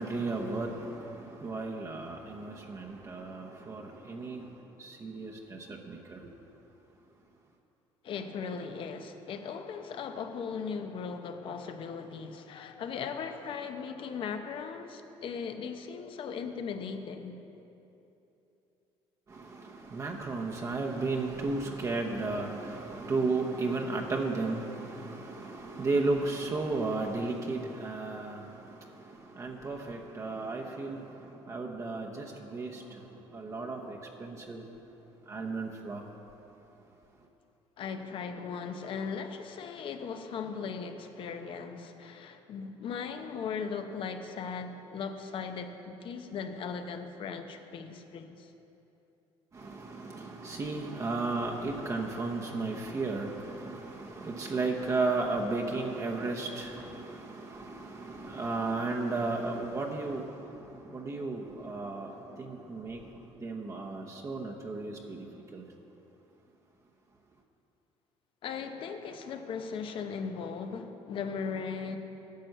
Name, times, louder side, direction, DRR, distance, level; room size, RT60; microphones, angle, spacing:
voice 1, 0.0-6.3 19.3-34.7 35.2-36.1 49.5-65.6, right 3 dB, 30° right, 1 dB, 0.9 m, -34 dB
voice 2, 8.0-17.4 37.8-48.5 68.4-72.0, left 6 dB, 55° left, 7 dB, 0.8 m, -38 dB
10.5 x 7.6 x 6.7 m, 3.0 s
cardioid pair, 115°, 11 cm